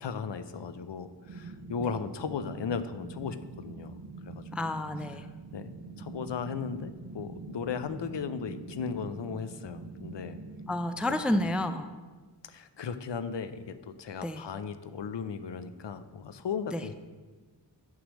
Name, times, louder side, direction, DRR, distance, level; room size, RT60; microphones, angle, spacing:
voice 1, 0.0-4.7 5.5-5.7 6.0-10.4 12.4-16.9, left 6 dB, 75° left, 11 dB, 0.6 m, -36 dB
sound 1, 1.2-11.6, right 3 dB, 90° right, 0.7 m, -44 dB
voice 2, 4.5-5.3 10.7-11.9 14.2-14.4 16.7-16.9, left 1 dB, 5° right, 9 dB, 0.3 m, -30 dB
9.3 x 3.3 x 6.3 m, 1.3 s
wide cardioid pair, 50°, 43 cm